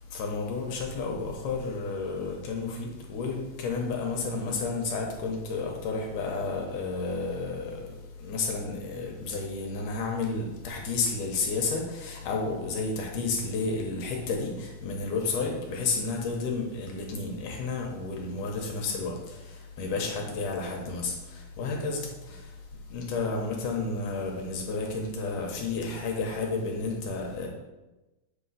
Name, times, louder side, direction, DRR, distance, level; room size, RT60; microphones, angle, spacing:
voice 1, 0.1-22.6 22.9-27.5, left 3 dB, 70° left, 0 dB, 2.3 m, -31 dB
7.9 x 3.7 x 5.5 m, 1.1 s
omnidirectional pair, 4.2 m